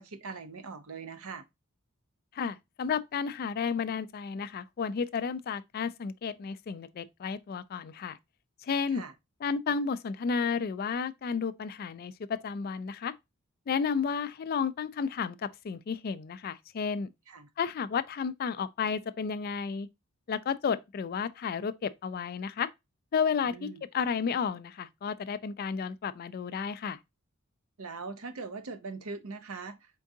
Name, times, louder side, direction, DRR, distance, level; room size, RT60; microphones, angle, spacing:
voice 1, 0.0-1.4 8.9-9.1 17.3-17.5 23.4-23.8 27.8-29.8, right 4 dB, 85° right, 0.7 m, -41 dB
voice 2, 2.4-8.2 8.6-9.0 9.4-13.1 13.7-17.1 17.6-19.9 20.3-22.7 23.1-23.7 23.9-27.0, left 6 dB, 45° left, 0.3 m, -32 dB
4.5 x 3.6 x 2.7 m
head